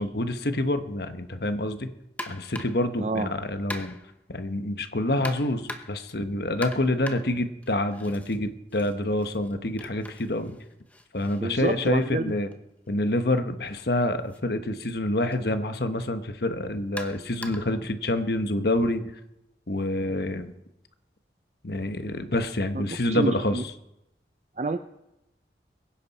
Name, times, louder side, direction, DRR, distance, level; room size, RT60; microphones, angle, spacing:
voice 1, 0.0-1.9 2.3-4.0 4.3-10.6 11.1-12.5 12.9-19.0 19.7-20.5 21.6-23.6, left 1 dB, 60° left, 9 dB, 1.1 m, -27 dB
sound 1, 2.2-2.9 3.7-4.2 5.2-6.1 6.6-8.4 8.7-12.6 13.6-13.8 14.3-14.4 15.3-15.4 17.0-17.8, left 1 dB, 10° left, 0.9 m, -41 dB
voice 2, 3.0-3.3 11.4-12.3 22.7-23.6 24.6-24.8, right 3 dB, 40° right, 9 dB, 0.5 m, -29 dB
22.5 x 10.5 x 4.2 m, 0.89 s
head